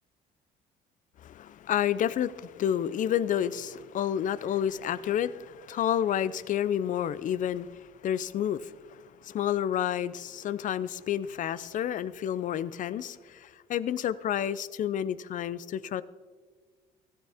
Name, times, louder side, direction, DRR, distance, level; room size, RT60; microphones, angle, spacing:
voice 1, 1.2-16.0, left 10 dB, 50° left, 17 dB, 0.5 m, -30 dB
15.0 x 13.5 x 3.5 m, 1.5 s
cardioid pair, 100°, 17 cm